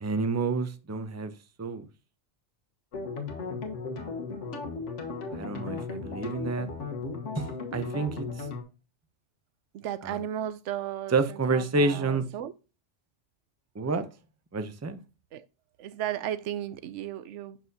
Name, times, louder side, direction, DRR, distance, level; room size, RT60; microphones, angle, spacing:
voice 1, 0.0-1.3 1.6-1.9 5.3-6.7 7.4-8.5 10.0-10.2 11.1-12.2 13.7-14.1 14.5-15.0, right 3 dB, 20° right, 0.5 m, -29 dB
sound 1, 2.9-8.6, left 4 dB, 85° left, 1.6 m, -36 dB
voice 2, 9.7-12.5 15.3-15.5 15.8-17.6, right 11 dB, 85° right, 0.9 m, -35 dB
7.5 x 5.8 x 2.8 m
omnidirectional pair, 1.2 m